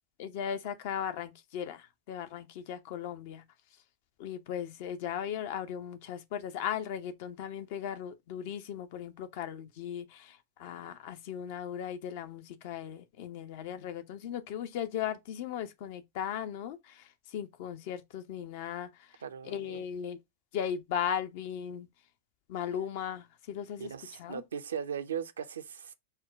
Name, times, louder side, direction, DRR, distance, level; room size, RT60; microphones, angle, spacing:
voice 1, 0.2-3.4 4.2-20.2 20.5-21.9 22.5-24.4, left 9 dB, 50° left, 0.6 m, -37 dB
voice 2, 19.2-19.8 23.8-25.9, right 8 dB, 65° right, 0.5 m, -38 dB
4.4 x 2.2 x 4.6 m
figure-of-eight pair, 90°, 0 cm